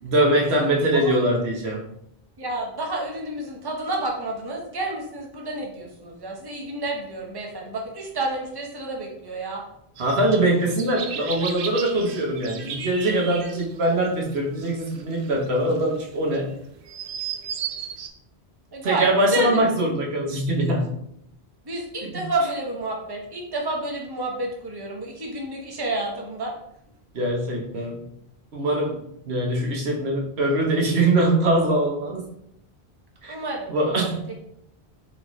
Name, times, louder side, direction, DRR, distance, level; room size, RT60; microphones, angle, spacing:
voice 1, 0.0-1.9 10.0-16.5 18.8-21.0 22.0-22.2 27.1-28.0 28.5-32.2 33.2-33.3 33.7-34.2, right 1 dB, 80° right, -1 dB, 1.2 m, -22 dB
voice 2, 2.4-9.6 18.7-19.6 21.6-26.5 33.3-34.2, right 2 dB, 25° right, -1 dB, 0.9 m, -30 dB
sound 1, 10.0-18.1, right 7 dB, 65° right, 0.7 m, -36 dB
4.1 x 3.9 x 3.0 m, 0.74 s
omnidirectional pair, 1.1 m